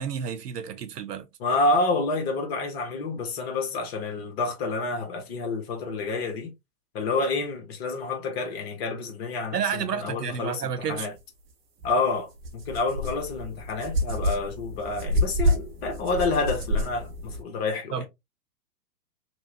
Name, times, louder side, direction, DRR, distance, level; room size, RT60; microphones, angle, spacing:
voice 1, 0.0-1.3 9.5-11.1 17.9-18.0, right 7 dB, 75° right, 0.8 m, -30 dB
voice 2, 1.4-6.5 6.9-11.1 11.8-18.1, left 3 dB, 40° left, 1.0 m, -28 dB
sound 1, 11.8-11.9 12.4-17.4, equal, 25° right, 0.9 m, -28 dB
2.9 x 2.3 x 2.8 m
figure-of-eight pair, 110°, 48 cm